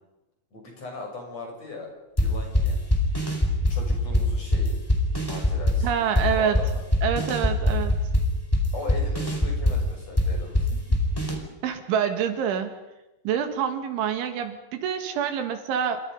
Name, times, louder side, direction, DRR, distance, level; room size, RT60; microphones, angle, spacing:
voice 1, 0.5-1.9 2.2-2.8 3.7-4.8 5.3-6.8 8.7-10.8 11.4-11.5, left 2 dB, 35° left, 1 dB, 7.7 m, -39 dB
sound 1, 2.2-11.3, left 1 dB, 5° left, 3.7 m, -23 dB
voice 2, 5.8-6.6 7.0-7.9 11.6-12.8 13.3-16.0, right 8 dB, 75° right, 7 dB, 4.3 m, -26 dB
28.5 x 26.0 x 5.5 m, 0.98 s
omnidirectional pair, 5.5 m